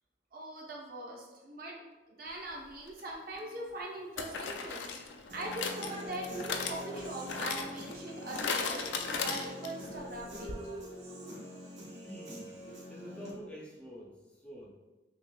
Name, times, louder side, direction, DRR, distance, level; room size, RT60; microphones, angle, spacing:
voice 1, 0.3-1.8 2.1-10.7 12.7-12.8, right 1 dB, 50° right, -2 dB, 0.7 m, -42 dB
sound 1, 2.9-3.0 4.2-9.9 10.2-10.3 10.5-10.6, left 5 dB, 70° left, 0.4 m, -37 dB
Human voice / Guitar, 5.3-13.3, equal, 65° right, 1.2 m, -45 dB
voice 2, 11.9-12.6 12.9-14.7, equal, 5° left, -4 dB, 0.4 m, -47 dB
5.9 x 2.4 x 2.2 m, 1.2 s
head